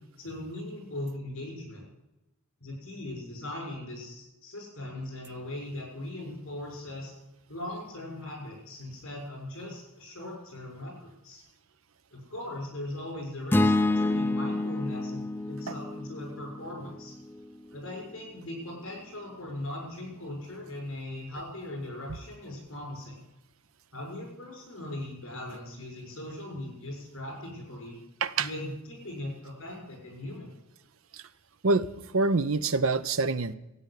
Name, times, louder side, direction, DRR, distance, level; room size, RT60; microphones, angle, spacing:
voice 1, 0.2-1.8 2.6-7.1 7.5-11.4 12.1-17.1 17.7-23.2 23.9-28.0 28.4-30.5, left 1 dB, 65° left, 0 dB, 6.7 m, -39 dB
sound 1, 13.5-17.8, left 2 dB, 10° left, 0.5 m, -28 dB
voice 2, 31.6-33.6, right 3 dB, 70° right, 14 dB, 0.7 m, -26 dB
14.0 x 9.0 x 8.4 m, 0.97 s
head